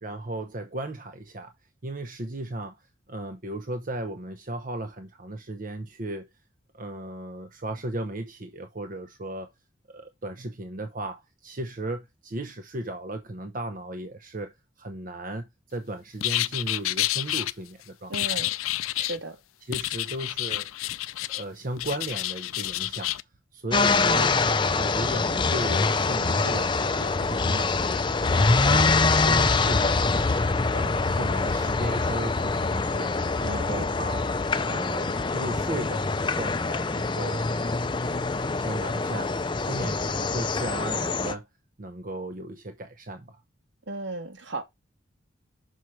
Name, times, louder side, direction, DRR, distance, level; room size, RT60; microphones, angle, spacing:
voice 1, 0.0-1.5 1.8-6.3 6.7-9.5 9.9-18.4 19.6-20.8 21.3-23.1 23.5-24.4 24.7-28.0 28.3-30.3 30.7-33.2 33.4-34.3 34.6-36.1 36.3-37.4 38.5-41.5 41.8-43.4, right 1 dB, 40° right, 0.7 m, -36 dB
sound 1, 16.2-17.5 18.1-19.2 19.7-21.4 21.8-23.2, left 15 dB, 90° left, 0.4 m, -29 dB
voice 2, 18.1-18.5 19.0-19.4 33.4-33.7 43.9-44.6, right 2 dB, 65° right, 1.4 m, -35 dB
sound 2, 23.7-41.3, left 3 dB, 25° left, 0.4 m, -24 dB
6.3 x 4.5 x 4.5 m
head